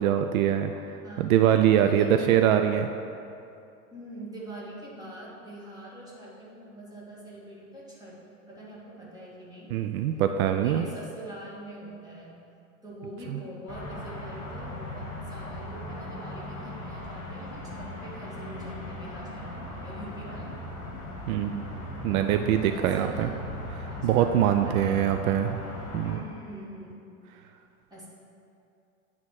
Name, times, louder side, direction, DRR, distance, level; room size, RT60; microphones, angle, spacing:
voice 1, 0.0-2.9 9.7-10.9 13.3-13.4 21.3-21.6 22.0-23.3 23.8-25.6 25.9-26.2, right 10 dB, 70° right, 7 dB, 0.5 m, -23 dB
voice 2, 1.0-1.4 1.8-2.3 3.9-8.2 8.5-9.7 10.4-12.4 12.8-20.7 22.1-23.4 23.9-24.4 24.6-25.1 26.0-27.0 27.9-28.1, right 1 dB, 10° right, -7 dB, 2.0 m, -44 dB
sound 1, 13.7-26.1, left 1 dB, 35° left, 1.9 m, -38 dB
9.9 x 3.7 x 6.3 m, 2.6 s
supercardioid pair, 125°, 44 cm